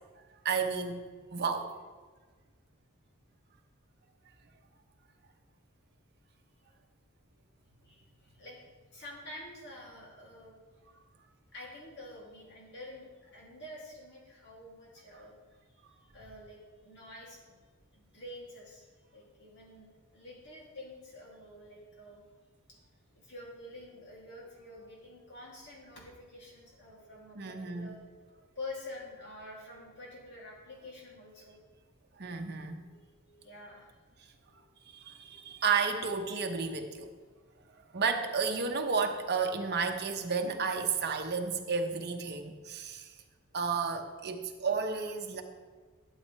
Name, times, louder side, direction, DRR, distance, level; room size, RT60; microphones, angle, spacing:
voice 1, 0.4-1.0 1.3-1.7 27.4-27.9 32.2-32.8 34.9-37.1 37.9-43.1 43.5-45.4, right 5 dB, 50° right, 4 dB, 0.9 m, -32 dB
voice 2, 7.6-10.7 11.5-15.3 15.7-17.6 17.9-22.2 23.2-28.0 28.5-31.6 32.7-34.0 34.4-34.8, left 1 dB, 55° left, -3 dB, 2.7 m, -48 dB
12.0 x 8.4 x 3.2 m, 1.4 s
head